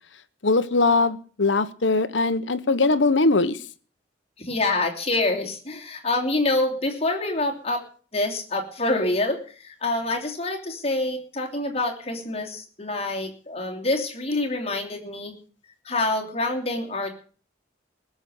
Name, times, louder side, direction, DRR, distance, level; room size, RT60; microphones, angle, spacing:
voice 1, 0.4-3.6, left 3 dB, 75° left, 13 dB, 1.1 m, -21 dB
voice 2, 4.4-7.8 8.1-15.3 15.8-17.1, left 2 dB, 35° left, 2 dB, 2.9 m, -26 dB
20.0 x 7.1 x 7.8 m, 0.42 s
head